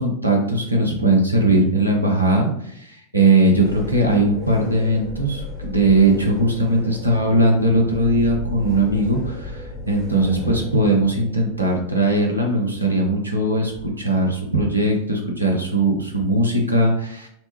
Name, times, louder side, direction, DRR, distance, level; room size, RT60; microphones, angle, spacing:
voice 1, 0.0-17.3, right 2 dB, 85° right, 0 dB, 0.6 m, -19 dB
sound 1, 3.6-13.9, left 2 dB, 15° right, 0.7 m, -35 dB
2.9 x 2.1 x 3.1 m, 0.72 s
figure-of-eight pair, 90°, 0 cm